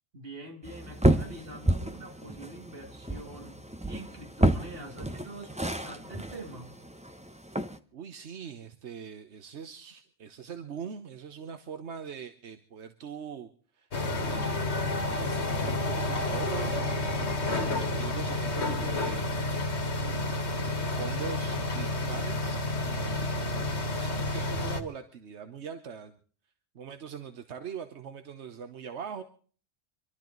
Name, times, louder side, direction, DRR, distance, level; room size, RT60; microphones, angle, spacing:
voice 1, 0.1-6.8, right 2 dB, 60° right, 3 dB, 2.6 m, -45 dB
sound 1, 0.6-7.8, right 1 dB, 5° right, 0.7 m, -30 dB
voice 2, 7.9-14.8 15.1-19.3 19.6-26.2 26.7-29.2, right 7 dB, 85° right, 8 dB, 1.3 m, -42 dB
sound 2, 13.9-24.8, left 2 dB, 80° left, 1.9 m, -30 dB
26.0 x 12.0 x 3.9 m, 0.43 s
omnidirectional pair, 1.1 m